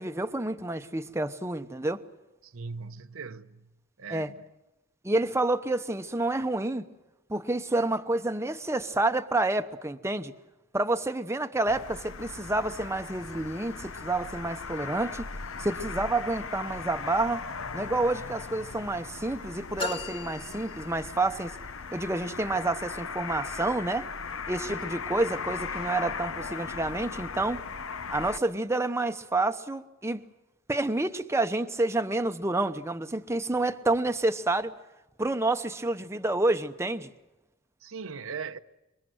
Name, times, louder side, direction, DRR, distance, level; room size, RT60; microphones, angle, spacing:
voice 1, 0.0-2.0 4.1-4.3 5.0-6.9 7.3-10.3 10.7-15.3 15.6-17.4 17.7-21.5 21.9-24.1 24.5-27.6 28.1-30.2 30.7-34.7 35.2-37.1, right 2 dB, 15° right, 0.9 m, -29 dB
voice 2, 2.4-3.6 4.0-4.3 37.8-38.6, right 5 dB, 75° right, 0.9 m, -39 dB
sound 1, 11.7-28.4, left 5 dB, 70° left, 1.0 m, -38 dB
sound 2, 19.8-21.5, left 3 dB, 25° left, 2.1 m, -37 dB
27.0 x 23.5 x 7.8 m
head